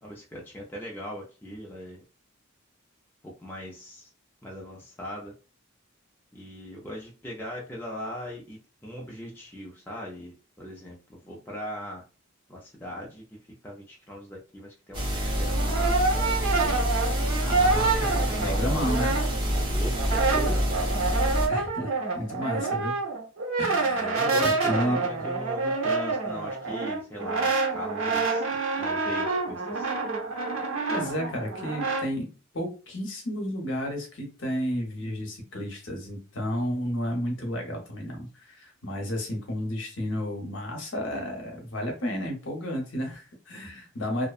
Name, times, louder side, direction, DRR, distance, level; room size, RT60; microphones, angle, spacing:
voice 1, 0.0-2.0 3.2-4.1 4.4-5.3 6.3-8.6 8.8-12.0 12.5-13.4 13.6-16.4 16.6-16.9 17.6-18.9 19.7-20.7 23.9-28.4 28.8-29.9, equal, 10° left, -3 dB, 0.4 m, -39 dB
sound 1, 14.9-21.5, equal, 25° right, 0.8 m, -27 dB
Brass instrument, 15.2-19.6 19.9-32.1, right 3 dB, 80° right, 0.8 m, -27 dB
voice 2, 17.4-19.1 21.5-23.0 23.6-25.0 30.9-32.3 32.5-44.3, equal, 65° left, 2 dB, 0.8 m, -32 dB
2.6 x 2.1 x 2.3 m, 0.33 s
head